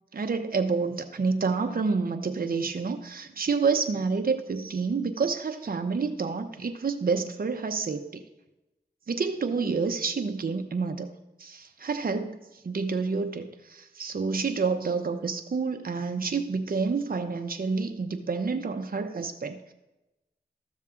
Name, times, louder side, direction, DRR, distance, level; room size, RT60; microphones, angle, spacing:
voice 1, 0.1-8.2 9.1-11.1 11.4-12.4 12.6-19.7, right 4 dB, 55° right, 6 dB, 0.8 m, -28 dB
13.0 x 7.3 x 3.7 m, 0.99 s
cardioid pair, 50°, 18 cm